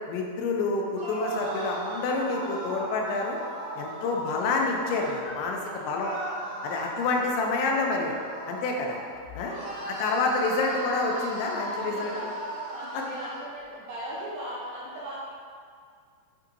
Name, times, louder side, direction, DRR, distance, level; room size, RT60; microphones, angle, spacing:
voice 1, 0.1-3.4 3.8-5.6 5.9-6.1 6.6-8.1 8.5-9.0 9.4-9.6 9.9-12.1, left 3 dB, 85° left, 0 dB, 3.1 m, -28 dB
sound 1, 0.9-5.2 6.0-9.1 9.5-13.4, right 1 dB, 55° right, 2.7 m, -36 dB
voice 2, 3.5-4.1 5.5-5.9 6.4-6.9 9.3-9.9 11.7-15.2, right 1 dB, 75° right, -8 dB, 2.2 m, -40 dB
sound 2, 5.2-7.0, left 1 dB, 55° left, 2.3 m, -47 dB
8.8 x 5.7 x 2.7 m, 2.2 s
omnidirectional pair, 5.1 m